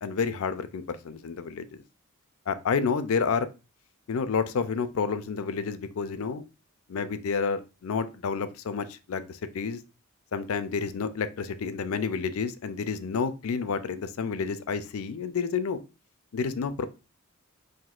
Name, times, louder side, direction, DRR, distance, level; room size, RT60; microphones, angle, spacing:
voice 1, 0.0-1.8 2.5-3.5 4.1-6.4 6.9-9.8 10.3-15.8 16.3-16.8, left 5 dB, 70° left, 11 dB, 0.4 m, -30 dB
5.9 x 2.6 x 2.4 m, 0.30 s
head